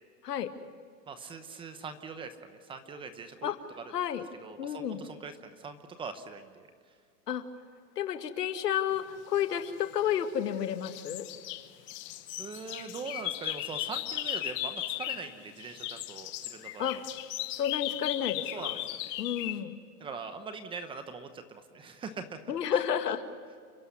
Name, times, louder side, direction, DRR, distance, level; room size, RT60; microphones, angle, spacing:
voice 1, 1.1-3.9 4.4-6.7 12.4-17.0 18.5-19.1 20.0-22.4 22.7-22.8, right 5 dB, 10° right, 9 dB, 0.8 m, -42 dB
voice 2, 3.9-4.2 4.6-5.0 7.3-7.4 8.0-11.3 16.8-17.0 17.6-18.8 19.2-19.8 22.5-23.2, left 9 dB, 85° left, 8 dB, 2.1 m, -31 dB
sound 1, 9.7-10.5 10.8-15.3 15.6-19.6, left 15 dB, 25° left, 0.9 m, -37 dB
30.0 x 11.0 x 9.9 m, 2.1 s
supercardioid pair, 155°, 46 cm